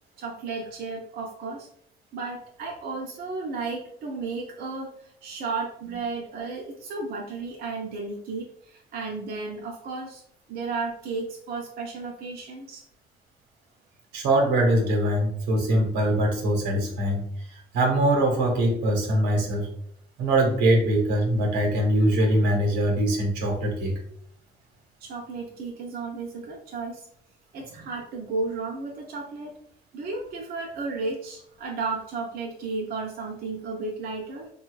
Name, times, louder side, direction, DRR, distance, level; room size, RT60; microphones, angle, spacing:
voice 1, 0.2-1.7 2.1-10.2 10.5-12.8 25.0-27.1 27.5-29.6 29.9-34.5, right 3 dB, 65° right, -1 dB, 0.6 m, -33 dB
voice 2, 14.1-19.7 20.2-24.0 27.8-27.9, right 1 dB, 90° right, 2 dB, 1.0 m, -23 dB
3.2 x 2.3 x 3.1 m, 0.65 s
cardioid pair, 110°, 17 cm